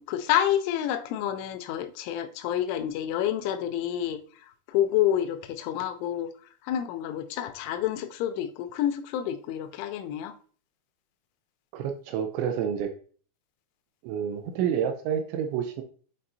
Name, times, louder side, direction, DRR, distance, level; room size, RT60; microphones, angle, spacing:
voice 1, 0.0-6.3 6.6-10.3, left 11 dB, 90° left, 3.0 m, -28 dB
voice 2, 11.7-12.9 14.0-15.8, right 8 dB, 80° right, 2.8 m, -29 dB
8.7 x 4.1 x 2.7 m
omnidirectional pair, 5.4 m